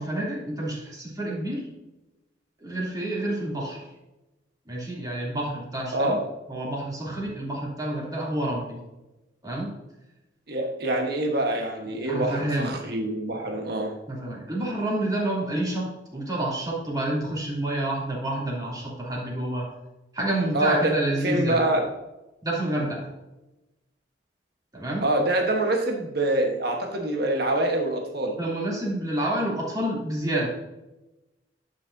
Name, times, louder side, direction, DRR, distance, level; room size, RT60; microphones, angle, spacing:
voice 1, 0.0-1.7 2.6-3.8 4.7-6.2 6.5-8.8 9.4-9.7 11.8-12.8 14.1-19.7 20.1-21.6 22.4-23.1 24.7-25.0 28.3-30.5, right 1 dB, 20° right, -5 dB, 2.9 m, -29 dB
voice 2, 10.5-13.9 20.5-20.9 21.2-21.9 25.0-28.4, right 1 dB, 60° right, 2 dB, 1.3 m, -25 dB
11.0 x 6.3 x 2.7 m, 0.99 s
head